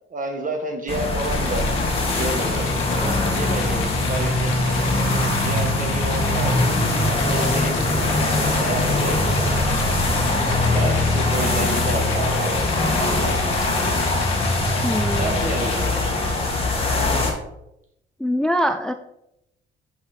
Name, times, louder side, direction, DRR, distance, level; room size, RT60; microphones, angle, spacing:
voice 1, 0.1-1.7 2.2-4.9 5.4-9.4 10.0-10.5 10.7-13.4 15.1-16.3, right 2 dB, 40° right, 4 dB, 1.6 m, -31 dB
sound 1, 0.9-17.3, left 2 dB, 30° left, 1.8 m, -22 dB
sound 2, 1.2-16.3, left 6 dB, 85° left, 1.1 m, -34 dB
voice 2, 14.8-15.4 18.2-18.9, equal, 5° left, 8 dB, 0.3 m, -23 dB
5.7 x 5.5 x 4.4 m, 0.82 s
cardioid pair, 90°, 20 cm